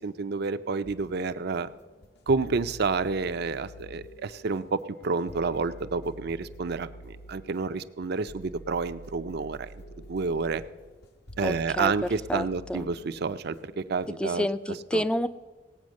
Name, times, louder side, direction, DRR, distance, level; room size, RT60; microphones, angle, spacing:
voice 1, 0.0-1.7 2.3-9.7 10.1-10.6 11.4-14.5 14.9-15.0, right 4 dB, 60° right, 11 dB, 0.5 m, -29 dB
sound 1, 0.8-14.1, equal, 60° left, 1.0 m, -48 dB
voice 2, 11.4-11.9 12.3-12.9 14.2-15.3, left 1 dB, 5° left, 13 dB, 0.4 m, -29 dB
17.5 x 8.7 x 6.4 m, 1.3 s
head